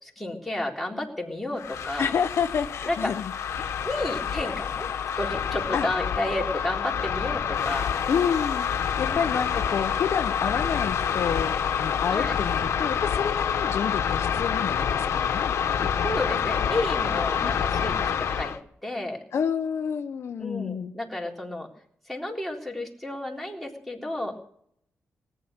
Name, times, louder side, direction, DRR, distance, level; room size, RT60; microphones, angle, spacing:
voice 1, 0.0-2.1 2.9-3.1 3.8-4.9 5.2-7.9 9.1-9.2 12.1-12.4 16.0-18.5 18.8-19.2 20.4-21.7 22.1-24.4, left 1 dB, ahead, -2 dB, 3.7 m, -31 dB
sound 1, 1.6-18.6, left 8 dB, 80° left, 1.4 m, -27 dB
voice 2, 2.0-3.3 3.6-3.8 5.7-5.9 8.1-8.7 9.0-15.9 17.4-17.6 19.3-20.9, left 7 dB, 65° left, 9 dB, 0.8 m, -29 dB
19.0 x 10.0 x 6.6 m, 0.67 s
wide cardioid pair, 120°, 5 cm